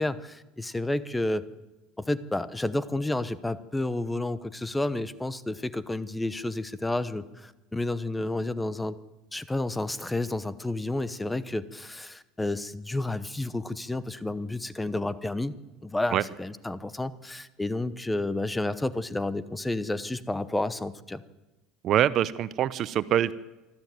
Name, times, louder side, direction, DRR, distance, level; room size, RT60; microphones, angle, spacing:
voice 1, 0.0-1.5 2.0-9.0 9.3-15.5 15.8-21.2, left 2 dB, 5° left, 15 dB, 0.9 m, -30 dB
voice 2, 21.8-23.3, right 11 dB, 45° right, 17 dB, 0.7 m, -24 dB
25.0 x 13.5 x 9.3 m, 1.1 s
supercardioid pair, 135°, 0 cm